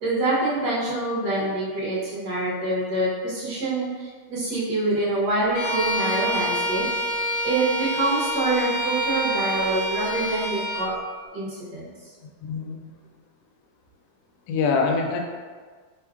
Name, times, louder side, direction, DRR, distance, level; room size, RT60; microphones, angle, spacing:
voice 1, 0.0-6.8 7.4-10.9 11.3-11.9, right 2 dB, 60° right, -7 dB, 1.3 m, -25 dB
Bowed string instrument, 5.5-10.9, right 1 dB, 70° left, 1.3 m, -27 dB
voice 2, 12.4-12.9 14.5-15.2, left 4 dB, 85° left, 1 dB, 0.8 m, -24 dB
4.4 x 3.6 x 2.3 m, 1.5 s
omnidirectional pair, 2.3 m